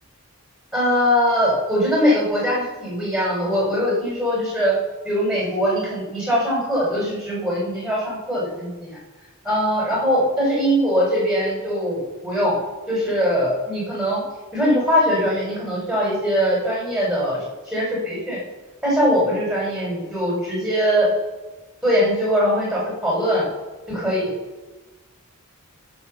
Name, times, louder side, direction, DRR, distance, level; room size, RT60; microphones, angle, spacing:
voice 1, 0.7-4.8 5.1-9.0 9.4-12.6 12.9-14.2 14.5-17.4 17.7-18.4 18.8-21.1 21.8-23.4 23.9-24.3, equal, ahead, -4 dB, 6.8 m, -21 dB
22.5 x 8.1 x 7.0 m, 1.2 s
head